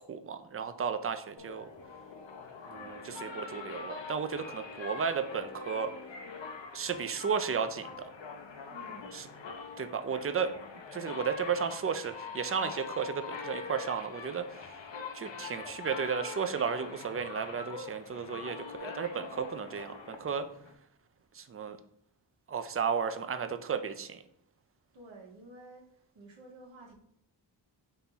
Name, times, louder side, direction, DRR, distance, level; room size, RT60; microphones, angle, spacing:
voice 1, 0.1-1.7 2.7-5.9 6.7-8.1 9.1-9.3 9.8-10.5 10.9-14.8 15.1-20.5 21.3-21.8 22.5-24.2, right 6 dB, 30° right, 10 dB, 0.4 m, -34 dB
sound 1, 1.4-20.7, left 5 dB, 75° left, 0.8 m, -44 dB
voice 2, 2.9-3.2 8.7-9.1 21.6-21.7 24.9-25.8 26.1-26.9, right 2 dB, 75° right, -1 dB, 1.1 m, -52 dB
4.2 x 2.9 x 3.7 m, 0.72 s
cardioid pair, 65°, 46 cm